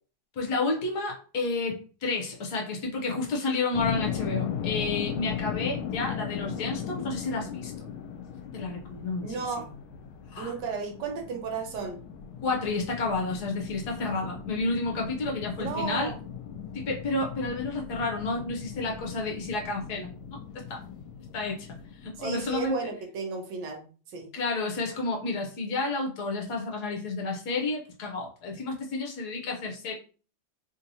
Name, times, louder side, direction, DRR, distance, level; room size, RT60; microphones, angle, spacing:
voice 1, 0.4-7.7 8.5-9.2 10.3-10.5 12.4-16.1 16.7-20.4 20.7-20.8 21.3-21.7 22.0-22.8 24.3-29.9, left 3 dB, 65° left, 0 dB, 1.1 m, -31 dB
sound 1, 3.7-22.7, left 8 dB, 80° left, 1.3 m, -37 dB
voice 2, 9.2-9.7 10.4-12.0 15.6-16.1 22.2-23.8 24.1-24.3, right 5 dB, 70° right, 3 dB, 1.3 m, -33 dB
3.5 x 2.7 x 2.6 m, 0.39 s
omnidirectional pair, 2.2 m